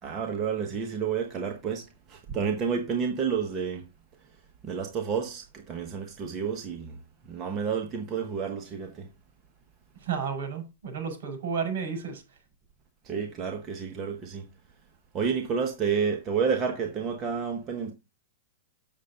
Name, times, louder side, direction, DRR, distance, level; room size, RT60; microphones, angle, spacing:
voice 1, 0.0-3.8 4.6-7.0 7.2-9.1 13.0-14.5 15.1-17.9, right 6 dB, 25° right, 1.3 m, -30 dB
voice 2, 10.0-12.4, right 6 dB, 65° right, 5.1 m, -32 dB
8.3 x 7.3 x 3.9 m
hypercardioid pair, 135°, 0 cm